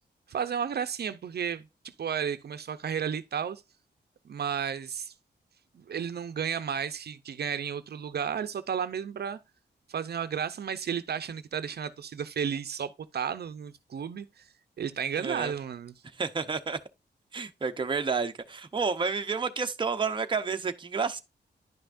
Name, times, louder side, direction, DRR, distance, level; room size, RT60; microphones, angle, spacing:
voice 1, 0.3-1.7 2.0-3.6 4.2-5.1 5.7-9.4 9.9-14.5 14.8-15.9, right 7 dB, 65° right, 0.6 m, -33 dB
voice 2, 15.2-15.5 16.2-16.8 17.3-21.2, right 5 dB, 25° right, 0.7 m, -30 dB
10.5 x 5.7 x 2.5 m
wide cardioid pair, 140°, 18 cm